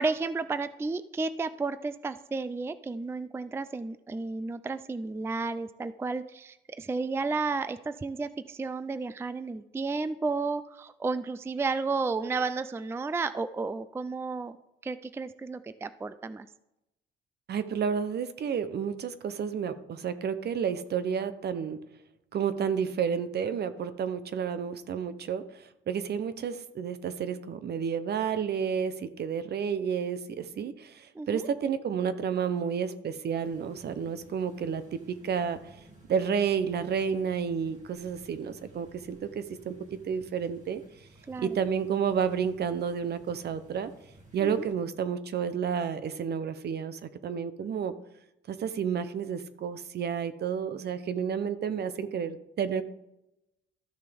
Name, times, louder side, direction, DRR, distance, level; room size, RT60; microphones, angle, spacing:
voice 1, 0.0-14.6 14.8-16.5 31.2-31.5 41.3-41.6 44.4-44.7, right 4 dB, 10° right, 13 dB, 0.3 m, -32 dB
voice 2, 17.5-21.8 22.3-35.6 36.1-40.8 41.4-43.9 44.3-47.9 48.5-52.8, right 7 dB, 55° right, 12 dB, 0.8 m, -31 dB
sound 1, 33.4-44.7, right 2 dB, 35° right, 2.6 m, -56 dB
13.0 x 6.6 x 3.5 m, 0.89 s
cardioid pair, 90°, 20 cm